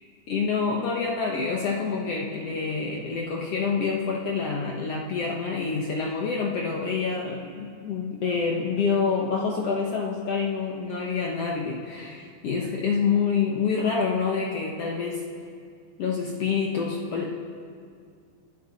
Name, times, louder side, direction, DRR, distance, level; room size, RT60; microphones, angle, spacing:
voice 1, 0.3-15.2 16.0-17.3, left 5 dB, 65° left, -1 dB, 1.5 m, -27 dB
30.0 x 10.5 x 4.1 m, 2.3 s
omnidirectional pair, 4.1 m